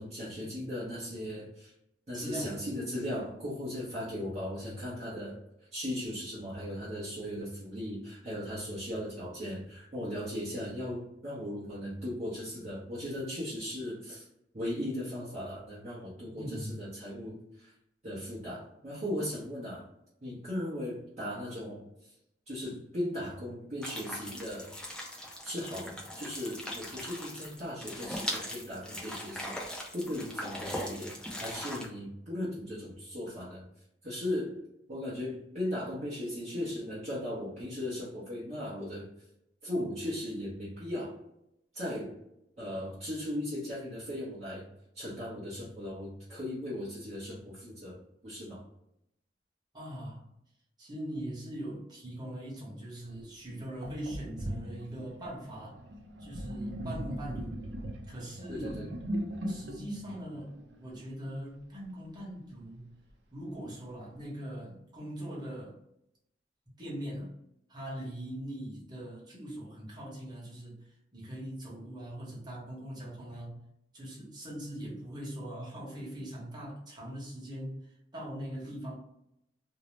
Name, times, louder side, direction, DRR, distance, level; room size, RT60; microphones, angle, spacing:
voice 1, 0.0-1.7 2.1-5.4 5.7-14.3 14.5-17.7 18.0-19.8 20.2-21.9 22.5-24.7 25.4-31.1 31.4-33.7 34.0-34.6 34.9-39.1 39.6-41.1 41.7-42.2 42.6-44.7 44.9-48.6 58.5-58.9, left 1 dB, 40° right, -8 dB, 0.7 m, -37 dB
voice 2, 2.1-2.5 16.3-16.8 49.7-50.3 50.8-55.8 56.2-57.5 58.1-58.8 59.5-62.9 63.3-65.7 66.8-67.3 67.7-73.6 73.9-78.9, right 1 dB, 25° right, -6 dB, 1.0 m, -41 dB
sound 1, 23.8-31.9, equal, 5° left, 0.5 m, -40 dB
Sink (filling or washing), 53.1-53.2 53.8-61.1, right 1 dB, 80° right, 0.5 m, -39 dB
2.6 x 2.0 x 3.1 m, 0.78 s
head